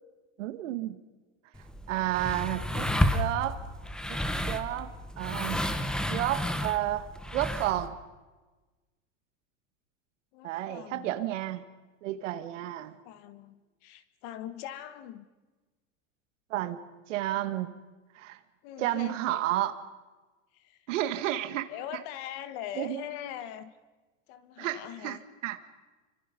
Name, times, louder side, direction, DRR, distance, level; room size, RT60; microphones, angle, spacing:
voice 1, 0.4-1.0 1.9-3.6 4.1-4.2 4.4-5.6 6.1-8.0 10.4-11.6 12.0-12.9 16.5-16.8 17.1-17.7 18.2-18.4 18.8-19.7 20.9-21.7 22.8-23.0 24.6-25.6, right 14 dB, 80° right, 10 dB, 2.1 m, -31 dB
sound 1, 1.5-7.9, left 1 dB, ahead, 1.0 m, -31 dB
voice 2, 10.3-11.1 13.0-15.3 18.6-19.5 20.5-20.8 21.7-23.7 24.3-25.2, left 11 dB, 50° left, 12 dB, 1.8 m, -41 dB
29.0 x 25.0 x 5.4 m, 1.2 s
supercardioid pair, 155°, 37 cm